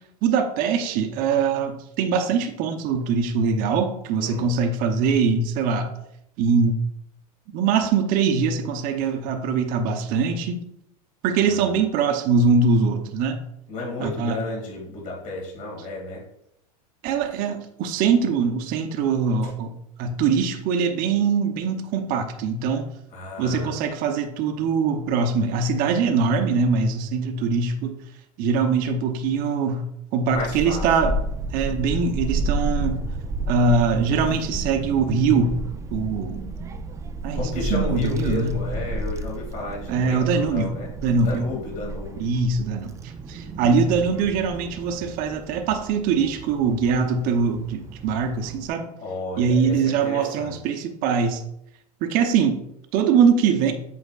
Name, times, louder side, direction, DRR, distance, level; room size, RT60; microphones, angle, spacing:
voice 1, 0.2-5.9 6.4-6.8 7.5-10.6 11.2-13.4 14.0-14.4 17.0-22.9 23.4-28.0 28.4-29.9 30.1-31.1 31.5-33.0 33.5-35.5 35.9-36.4 37.2-38.6 39.8-40.7 41.0-41.5 42.2-48.9 49.4-51.4 52.0-52.6 52.9-53.7, right 5 dB, 45° right, 5 dB, 0.9 m, -22 dB
voice 2, 4.2-4.5 11.4-11.7 13.7-16.2 23.1-23.8 30.3-31.1 37.3-40.9 41.2-42.3 49.0-50.6, left 2 dB, 40° left, -2 dB, 2.5 m, -33 dB
Child speech kid speaking / Wind, 30.3-48.7, right 2 dB, 15° right, 0.5 m, -32 dB
8.1 x 5.0 x 2.5 m, 0.77 s
hypercardioid pair, 115°, 20 cm